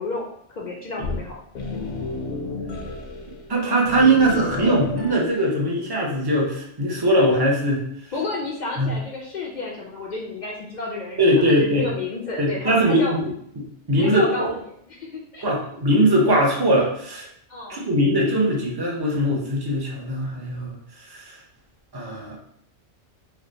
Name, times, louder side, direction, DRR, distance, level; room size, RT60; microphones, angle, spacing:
voice 1, 0.0-1.4 8.1-13.2 14.0-14.4 15.1-15.5 17.5-17.8, left 3 dB, 60° left, -2 dB, 0.5 m, -31 dB
sound 1, 1.0-3.5 3.8-5.3, left 3 dB, 90° left, 1.0 m, -31 dB
voice 2, 3.5-7.8 8.8-8.9 11.2-11.9 12.4-13.3 13.6-14.3 15.4-17.3 17.7-20.8 21.1-21.2 21.9-22.4, right 1 dB, 25° right, -2 dB, 0.6 m, -20 dB
3.3 x 2.1 x 3.8 m, 0.69 s
omnidirectional pair, 1.2 m